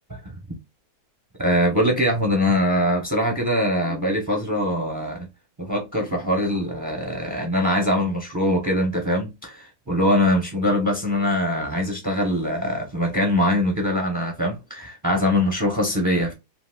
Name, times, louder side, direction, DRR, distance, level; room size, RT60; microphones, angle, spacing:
voice 1, 1.4-5.3 5.6-16.3, left 1 dB, 25° right, 0.4 m, -22 dB
3.9 x 2.5 x 2.2 m
omnidirectional pair, 1.7 m